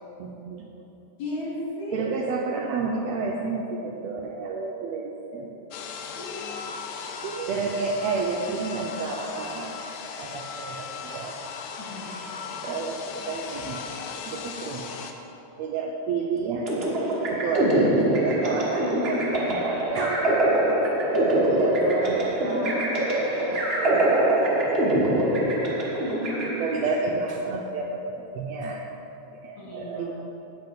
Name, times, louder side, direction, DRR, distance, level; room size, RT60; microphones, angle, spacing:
voice 1, 0.2-0.7 1.9-5.5 7.2-9.8 10.2-11.4 12.6-13.8 14.2-14.9 15.6-20.7 21.1-24.3 24.6-24.9 26.6-29.0 29.4-30.1, right 4 dB, 75° right, 0 dB, 1.6 m, -30 dB
voice 2, 1.2-2.1 6.2-6.3 6.7-6.8 11.8-12.1 29.6-30.1, left 1 dB, 65° left, -6 dB, 3.4 m, -35 dB
sound 1, 5.7-15.1, left 6 dB, 80° left, 2.1 m, -37 dB
sound 2, 16.7-27.1, right 1 dB, 40° right, 0.8 m, -24 dB
8.9 x 7.7 x 5.3 m, 3.0 s
omnidirectional pair, 3.5 m